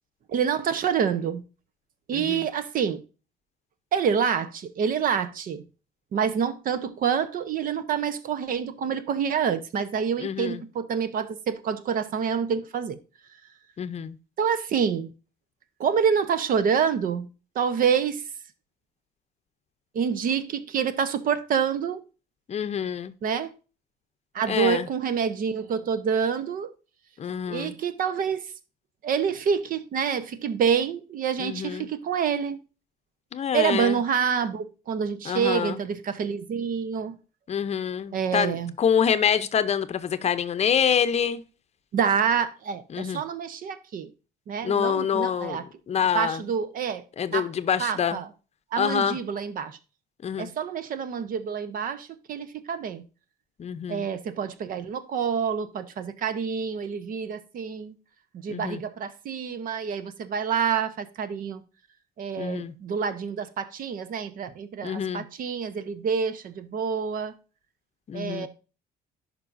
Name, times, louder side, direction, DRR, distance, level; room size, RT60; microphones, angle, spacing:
voice 1, 0.3-1.4 2.1-3.0 3.9-5.6 6.1-13.0 14.4-15.1 15.8-17.3 17.5-18.2 19.9-22.0 23.2-23.5 24.3-26.7 27.5-28.4 29.0-32.6 33.5-37.2 38.1-38.7 41.9-44.1 44.5-45.6 46.1-47.0 47.3-47.5 47.8-48.3 48.7-49.8 50.4-53.0 53.9-58.0 58.4-61.6 62.2-67.3 68.1-68.5, right 7 dB, 55° right, 0.9 m, -27 dB
voice 2, 2.1-2.5 10.2-10.6 13.8-14.2 22.5-23.1 24.5-24.9 27.2-27.7 31.4-31.9 33.3-34.0 35.2-35.8 37.5-41.4 42.9-43.2 44.6-46.5 47.2-48.2 48.8-49.2 50.2-50.5 53.6-54.1 58.5-58.8 62.4-62.7 64.8-65.2 68.1-68.5, left 8 dB, 40° left, 0.7 m, -26 dB
10.5 x 5.4 x 2.6 m
cardioid pair, 110°, 17 cm